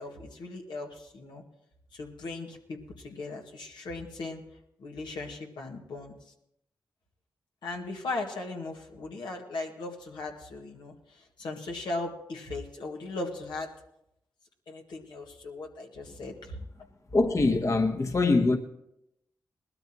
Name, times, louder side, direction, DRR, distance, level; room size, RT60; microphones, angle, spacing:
voice 1, 0.0-1.4 1.9-4.4 4.8-6.1 7.6-13.7 14.7-16.6, left 2 dB, 80° left, 1 dB, 1.9 m, -38 dB
voice 2, 17.1-18.6, left 3 dB, 40° left, 5 dB, 1.3 m, -23 dB
19.5 x 13.0 x 3.0 m, 0.81 s
supercardioid pair, 50°, 8 cm